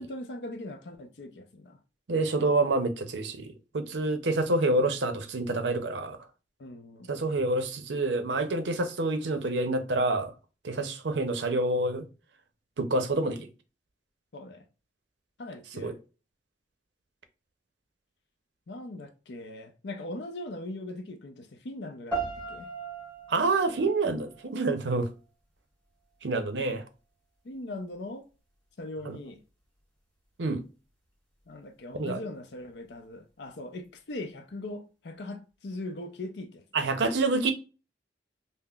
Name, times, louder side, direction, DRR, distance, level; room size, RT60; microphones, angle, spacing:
voice 1, 0.0-1.8 6.6-7.1 14.3-14.7 15.4-16.0 18.7-22.7 27.4-28.3 28.8-29.4 31.5-36.6, left 2 dB, 65° left, 0.5 m, -40 dB
voice 2, 2.1-6.2 7.1-10.3 10.6-12.1 12.8-13.5 15.8-15.9 23.3-25.1 26.2-26.8 29.1-29.2 30.4-30.6 32.0-32.2 36.7-37.5, right 2 dB, 70° right, 0.6 m, -27 dB
sound 1, 22.1-25.1, right 4 dB, 10° left, 1.2 m, -38 dB
5.4 x 2.0 x 2.3 m
head